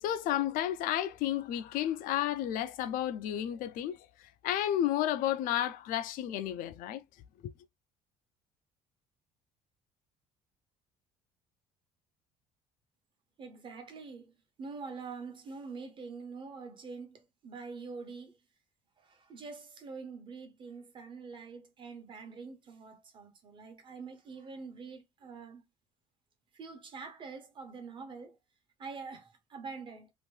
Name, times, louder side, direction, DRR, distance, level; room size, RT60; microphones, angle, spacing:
voice 1, 0.0-4.0 4.4-7.0 7.4-7.5, left 12 dB, 70° left, 0.5 m, -32 dB
voice 2, 13.4-14.3 14.6-18.4 19.0-25.6 26.5-28.4 28.8-30.1, right 4 dB, 35° right, 1.0 m, -45 dB
2.9 x 2.6 x 3.2 m
cardioid pair, 135°, 15 cm